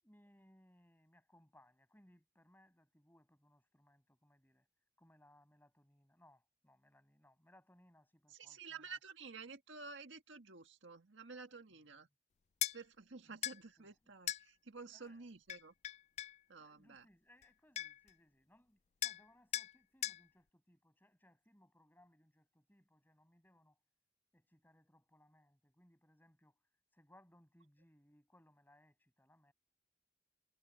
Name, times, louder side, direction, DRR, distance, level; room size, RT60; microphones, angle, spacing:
voice 1, 0.0-4.7 5.0-9.0 11.7-11.9 13.2-13.4 13.8-14.1 14.9-15.3 16.6-23.8 24.3-29.5, left 1 dB, 10° left, 7.6 m, -68 dB
voice 2, 8.3-12.1 12.7-15.7 16.5-17.1, right 4 dB, 80° right, 1.7 m, -52 dB
sound 1, 12.6-12.8 13.4-13.6 14.3-14.4 15.5-16.4 17.4-17.5 17.8-18.1 19.0-19.2 19.5-19.7 20.0-20.2, left 12 dB, 35° left, 0.3 m, -39 dB
head